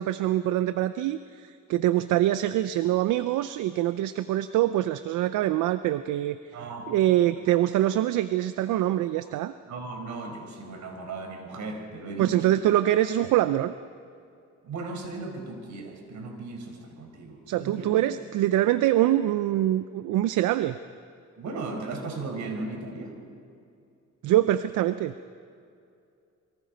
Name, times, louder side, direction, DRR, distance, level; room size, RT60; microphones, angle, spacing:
voice 1, 0.0-6.4 6.9-9.5 12.2-13.7 17.5-20.7 24.2-25.1, right 13 dB, 90° right, 12 dB, 0.7 m, -24 dB
voice 2, 6.5-7.4 9.7-12.5 14.6-18.0 21.4-23.2, right 3 dB, 70° right, 3 dB, 5.0 m, -37 dB
28.5 x 23.0 x 5.2 m, 2.4 s
cardioid pair, 90°, 30 cm